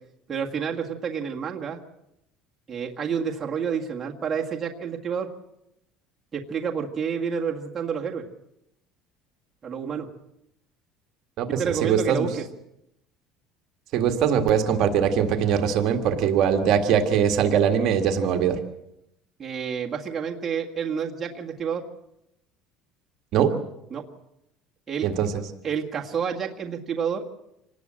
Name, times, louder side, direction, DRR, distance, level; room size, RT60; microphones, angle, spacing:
voice 1, 0.3-1.8 2.7-5.3 6.3-8.2 9.6-10.1 11.5-12.4 19.4-21.8 23.9-24.1 24.9-25.1 25.6-27.2, right 7 dB, 20° right, -1 dB, 1.8 m, -29 dB
voice 2, 11.4-12.3 13.9-18.6 23.3-23.5 25.0-25.3, right 8 dB, 45° right, 5 dB, 1.8 m, -22 dB
26.0 x 19.0 x 7.6 m, 0.83 s
cardioid pair, 180°, 0 cm